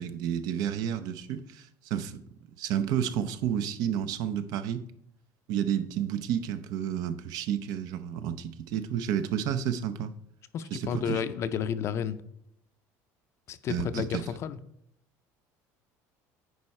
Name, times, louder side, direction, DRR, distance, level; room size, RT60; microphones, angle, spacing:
voice 1, 0.0-2.2 2.6-4.8 5.5-10.1 10.7-11.2 13.7-14.2, right 9 dB, 65° right, 11 dB, 0.6 m, -31 dB
voice 2, 10.5-12.2 13.5-14.6, left 8 dB, 40° left, 12 dB, 0.5 m, -31 dB
9.5 x 4.7 x 4.3 m, 0.74 s
cardioid pair, 140°, 7 cm